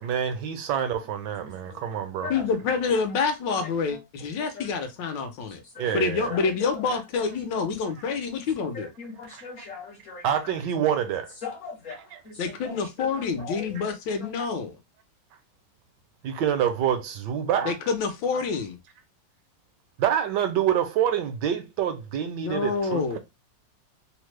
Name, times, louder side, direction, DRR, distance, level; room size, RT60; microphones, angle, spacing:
voice 1, 0.0-2.3 5.8-6.3 9.3-9.5 10.2-11.3 11.9-12.2 16.2-17.7 20.0-23.2, right 9 dB, 75° right, 1.2 m, -27 dB
voice 2, 2.3-5.6 5.9-8.9 12.4-14.8 17.6-18.8 22.4-23.2, left 5 dB, 80° left, 1.4 m, -27 dB
voice 3, 6.3-6.7 8.7-10.2 11.4-12.0 12.3-13.7 14.2-14.3, left 4 dB, 55° left, 0.9 m, -39 dB
3.4 x 2.0 x 3.2 m
omnidirectional pair, 2.0 m